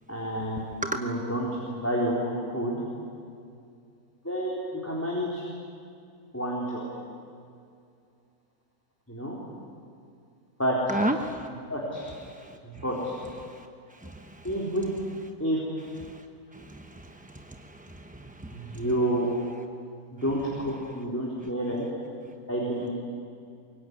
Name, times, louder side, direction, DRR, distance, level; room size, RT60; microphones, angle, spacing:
voice 1, 0.1-0.6 0.9-1.5 1.7-2.8 4.2-5.4 6.3-6.9 9.1-9.4 10.6-11.0 11.7-12.0 12.6-13.1 14.4-14.9 15.4-15.6 18.5-19.3 20.1-21.9 22.5-22.9, right 1 dB, 10° left, -4 dB, 4.1 m, -29 dB
voice 2, 10.9-11.5 12.3-12.6 13.4-13.7 13.9-14.5 16.0-16.2 16.5-18.8, right 1 dB, 10° right, 5 dB, 0.6 m, -34 dB
24.5 x 22.5 x 9.7 m, 2.4 s
omnidirectional pair, 1.6 m